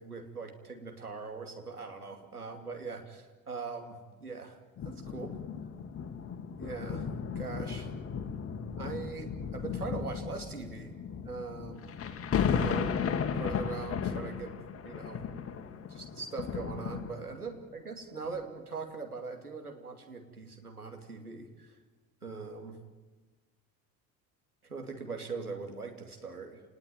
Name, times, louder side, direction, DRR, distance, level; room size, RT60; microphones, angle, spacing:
voice 1, 0.0-4.6 4.8-5.4 6.6-7.9 8.8-11.0 11.2-12.0 12.5-15.3 15.9-21.8 22.2-22.8 24.6-26.6, right 4 dB, 85° right, 4 dB, 2.7 m, -41 dB
sound 1, 4.8-17.6 18.2-18.4, left 7 dB, 30° left, 2.2 m, -35 dB
30.0 x 19.5 x 9.4 m, 1.3 s
figure-of-eight pair, 65°, 44 cm